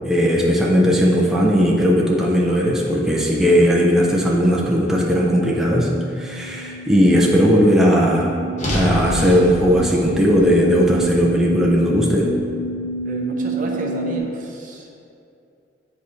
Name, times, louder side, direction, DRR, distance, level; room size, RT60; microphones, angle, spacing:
voice 1, 0.1-5.9 6.2-8.3 8.7-12.3, equal, ahead, -4 dB, 0.6 m, -17 dB
sound 1, 5.8-14.2, right 2 dB, 80° right, 0.9 m, -30 dB
sound 2, 8.6-12.8, equal, 40° left, 1.0 m, -28 dB
voice 2, 13.0-14.9, equal, 45° right, 0 dB, 0.7 m, -30 dB
9.1 x 4.2 x 3.2 m, 2.6 s
head